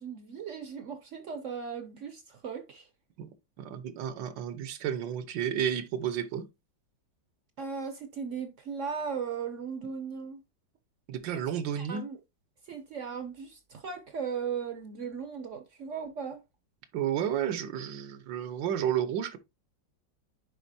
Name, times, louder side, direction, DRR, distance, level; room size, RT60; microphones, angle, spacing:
voice 1, 0.0-2.9 7.6-10.4 11.3-11.5 11.8-12.2 12.6-16.4, right 6 dB, 60° right, 0.8 m, -37 dB
voice 2, 3.6-6.5 11.1-12.1 16.9-19.4, right 9 dB, 85° right, 1.6 m, -31 dB
9.8 x 4.1 x 2.7 m
omnidirectional pair, 1.9 m